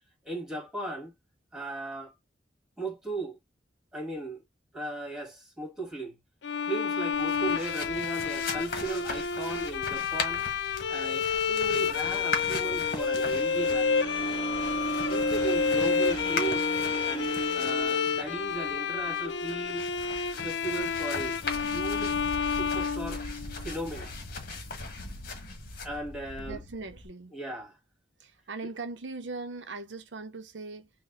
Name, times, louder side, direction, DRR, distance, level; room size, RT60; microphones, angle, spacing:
voice 1, 0.2-1.1 1.5-2.1 2.8-3.4 3.9-4.4 4.7-6.2 6.7-10.4 10.9-14.1 15.1-16.7 17.0-19.9 20.4-22.2 22.6-23.2 23.6-24.1 25.8-26.6 27.3-27.8, right 2 dB, 5° right, 1.7 m, -37 dB
Bowed string instrument, 6.4-23.7, left 6 dB, 70° left, 0.5 m, -30 dB
sound 1, 7.1-27.1, left 3 dB, 55° left, 1.4 m, -39 dB
sound 2, 11.5-19.8, right 1 dB, 25° left, 1.3 m, -35 dB
voice 2, 26.4-27.4 28.2-30.9, right 3 dB, 85° right, 0.7 m, -40 dB
4.0 x 2.2 x 3.7 m
head